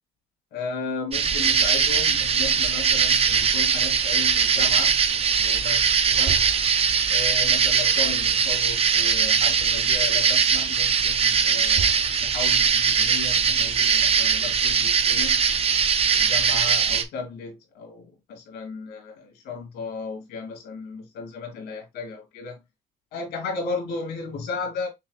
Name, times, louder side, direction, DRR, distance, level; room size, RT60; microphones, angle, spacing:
voice 1, 0.5-5.0 5.4-6.4 7.1-11.9 12.2-15.4 16.1-22.6 23.1-24.9, left 4 dB, 80° left, 2.5 m, -35 dB
sound 1, 1.1-17.0, right 6 dB, 35° right, 0.6 m, -21 dB
6.3 x 3.1 x 2.3 m
cardioid pair, 110°, 17 cm